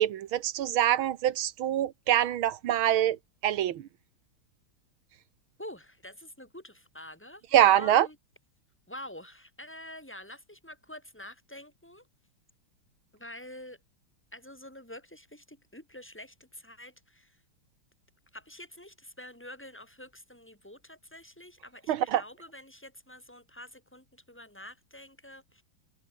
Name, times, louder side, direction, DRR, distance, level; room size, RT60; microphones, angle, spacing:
voice 1, 0.0-3.9 7.5-8.1 21.9-22.2, right 11 dB, 75° right, 1.8 m, -25 dB
voice 2, 5.6-8.2 8.9-12.1 13.1-13.8 14.3-17.4 18.3-25.6, left 1 dB, 5° left, 7.4 m, -47 dB
omnidirectional pair, 2.3 m